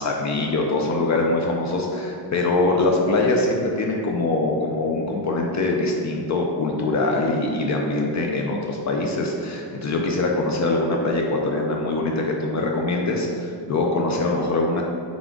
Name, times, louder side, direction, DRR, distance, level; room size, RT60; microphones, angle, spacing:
voice 1, 0.0-14.8, left 2 dB, 40° left, 0 dB, 0.4 m, -23 dB
3.6 x 3.5 x 3.6 m, 2.3 s
cardioid pair, 125°, 44 cm